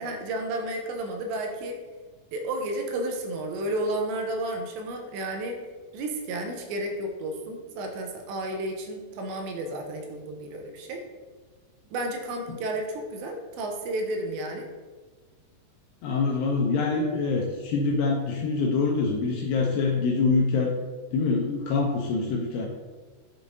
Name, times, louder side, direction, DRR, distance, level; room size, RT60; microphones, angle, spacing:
voice 1, 0.0-1.8 2.3-5.6 5.9-11.1 11.9-14.7, right 1 dB, 80° right, 3 dB, 2.8 m, -32 dB
voice 2, 16.0-20.7 21.1-22.7, left 4 dB, 80° left, 0 dB, 2.4 m, -25 dB
9.4 x 5.0 x 2.6 m, 1.4 s
omnidirectional pair, 5.3 m